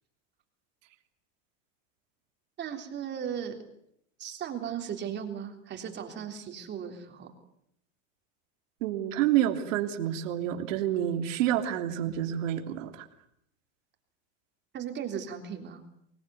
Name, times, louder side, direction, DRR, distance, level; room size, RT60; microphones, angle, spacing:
voice 1, 2.6-3.6 4.2-7.3 14.7-15.8, right 8 dB, 25° right, 4 dB, 3.5 m, -36 dB
voice 2, 8.8-13.1, right 11 dB, 75° right, 5 dB, 3.4 m, -28 dB
25.0 x 20.0 x 9.3 m, 0.73 s
supercardioid pair, 155°, 38 cm